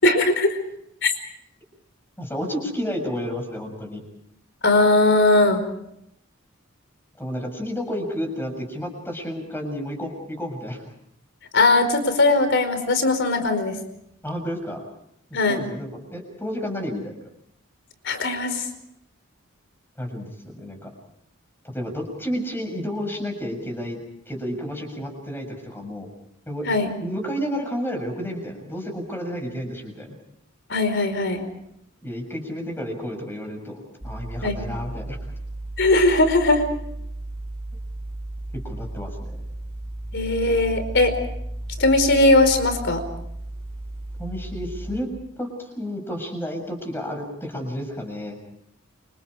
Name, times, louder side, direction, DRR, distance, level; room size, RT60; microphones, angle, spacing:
voice 1, 0.0-0.6 1.0-1.1 4.6-5.6 11.5-13.8 15.3-15.6 18.0-18.7 26.7-26.9 30.7-31.4 34.4-34.5 35.8-36.6 40.1-41.1 41.8-43.0, left 2 dB, 55° left, 9 dB, 4.8 m, -19 dB
voice 2, 2.2-4.0 7.2-10.8 14.2-14.9 15.3-17.1 20.0-20.9 21.7-24.0 24.3-26.1 26.5-26.7 27.0-30.2 32.0-35.2 38.6-39.2 44.2-45.1 45.4-48.4, equal, 10° left, 4 dB, 7.0 m, -31 dB
sound 1, 34.0-45.0, right 1 dB, 30° right, 6.1 m, -34 dB
29.5 x 26.5 x 5.0 m, 0.76 s
head